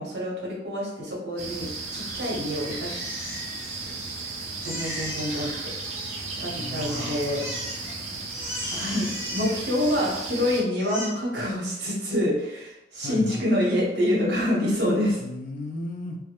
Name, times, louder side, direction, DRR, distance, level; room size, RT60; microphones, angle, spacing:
voice 1, 0.0-2.9 4.6-5.5 6.4-7.4 8.7-15.2, left 1 dB, 65° right, -3 dB, 0.8 m, -26 dB
sound 1, 1.4-10.6, right 3 dB, 40° right, 0.4 m, -35 dB
Crying sobbing, 2.5-4.2 4.6-6.4 6.7-7.9 8.3-10.4 10.7-11.1, equal, 15° left, 1.0 m, -37 dB
voice 2, 6.6-7.8 13.0-13.4 15.2-16.2, left 1 dB, 50° left, 2 dB, 0.4 m, -36 dB
2.2 x 2.0 x 2.8 m, 0.89 s
head